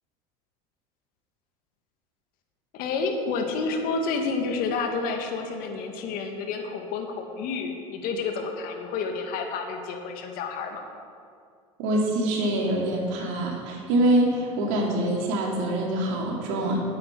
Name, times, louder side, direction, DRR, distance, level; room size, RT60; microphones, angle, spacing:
voice 1, 2.7-10.8, left 4 dB, 60° left, 4 dB, 1.9 m, -30 dB
voice 2, 11.8-16.8, right 1 dB, 70° right, -1 dB, 2.9 m, -25 dB
9.8 x 8.3 x 8.3 m, 2.3 s
hypercardioid pair, 80°, 17 cm